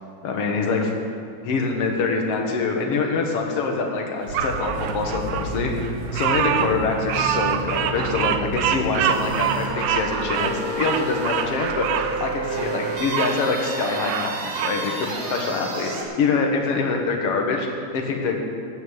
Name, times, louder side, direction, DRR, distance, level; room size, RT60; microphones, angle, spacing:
voice 1, 0.2-0.9 1.4-5.7 6.1-11.9 12.2-17.7 17.9-18.4, left 4 dB, 55° left, 2 dB, 2.2 m, -25 dB
sound 1, 4.3-16.0, right 2 dB, 60° right, 2.5 m, -31 dB
Bird vocalization bird call bird song, 4.3-13.3 13.8-14.8, right 9 dB, 80° right, 1.4 m, -26 dB
15.5 x 6.1 x 8.1 m, 2.3 s
omnidirectional pair, 3.4 m